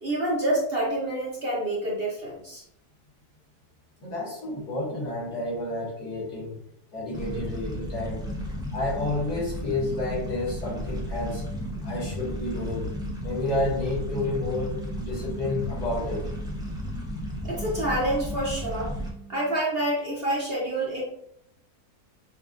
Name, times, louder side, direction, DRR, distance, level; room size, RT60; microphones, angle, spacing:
voice 1, 0.0-2.6 17.4-18.9 19.3-21.0, right 1 dB, 45° right, -4 dB, 1.0 m, -27 dB
voice 2, 4.0-6.6 6.9-8.3 8.7-11.4 11.8-12.9 13.2-16.3, left 2 dB, 75° left, -4 dB, 2.0 m, -30 dB
sound 1, 7.1-19.1, equal, 5° right, 0.3 m, -34 dB
sound 2, 11.4-13.4 14.0-16.7 17.3-19.6, equal, 75° right, 1.8 m, -45 dB
6.3 x 2.5 x 2.4 m, 0.76 s
omnidirectional pair, 1.7 m